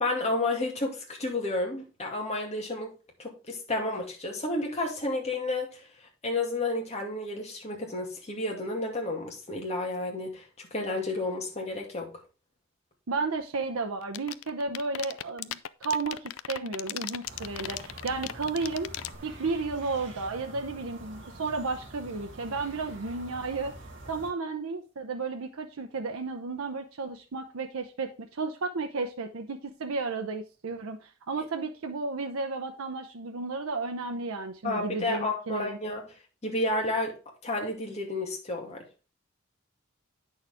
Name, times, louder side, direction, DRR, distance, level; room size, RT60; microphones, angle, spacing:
voice 1, 0.0-2.9 3.2-5.9 6.2-12.1 34.6-36.0 36.4-37.2 37.4-38.8, left 2 dB, 30° left, 2.3 m, -31 dB
voice 2, 13.1-18.9 19.2-23.7 24.1-35.8, right 3 dB, 90° right, 0.7 m, -33 dB
sound 1, 14.0-19.2, left 12 dB, 70° left, 0.4 m, -35 dB
sound 2, 17.2-24.3, right 2 dB, 60° right, 1.8 m, -46 dB
9.0 x 6.4 x 3.5 m
head